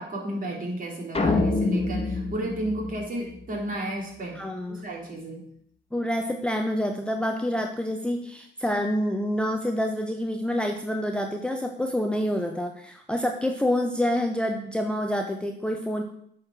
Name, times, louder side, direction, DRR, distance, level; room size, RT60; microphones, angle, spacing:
voice 1, 0.0-5.4, right 1 dB, 45° right, -1 dB, 3.2 m, -33 dB
sound 1, 1.1-3.6, left 3 dB, 30° left, 1.5 m, -26 dB
voice 2, 4.3-4.8 5.9-16.0, equal, 5° left, 3 dB, 0.9 m, -27 dB
8.5 x 4.8 x 6.1 m, 0.69 s
cardioid pair, 90°, 20 cm